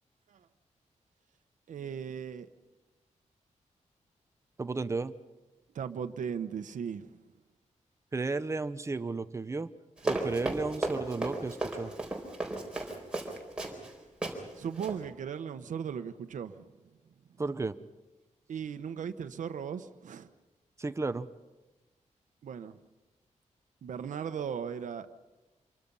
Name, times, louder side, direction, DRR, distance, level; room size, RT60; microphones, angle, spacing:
voice 1, 1.7-2.5 5.7-7.2 14.6-16.7 18.5-20.3 22.4-22.8 23.8-25.1, right 7 dB, 85° right, 9 dB, 1.1 m, -37 dB
voice 2, 4.6-5.2 8.1-9.7 10.0-11.9 17.4-17.8 20.8-21.3, right 3 dB, 20° right, 12 dB, 0.8 m, -33 dB
Run, 10.0-13.9 14.2-14.4 14.7-15.0, right 2 dB, 5° right, 4.1 m, -34 dB
27.0 x 23.5 x 5.5 m, 1.1 s
wide cardioid pair, 160°, 13 cm